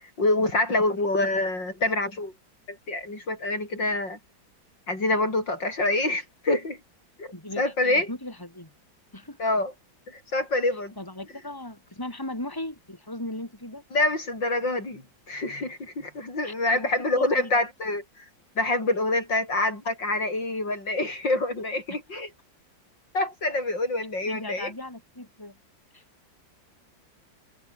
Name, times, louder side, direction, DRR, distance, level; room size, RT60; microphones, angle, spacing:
voice 1, 0.2-2.3 2.7-4.2 4.9-6.8 7.2-8.1 9.4-9.7 10.1-10.9 13.9-18.2 18.6-22.3 23.1-24.7, left 2 dB, 65° left, 8.2 m, -26 dB
voice 2, 7.3-8.7 9.1-9.4 11.0-13.8 16.4-16.5 16.8-17.6 24.3-25.6 25.9-26.0, left 1 dB, 10° left, 5.2 m, -37 dB
omnidirectional pair, 2.1 m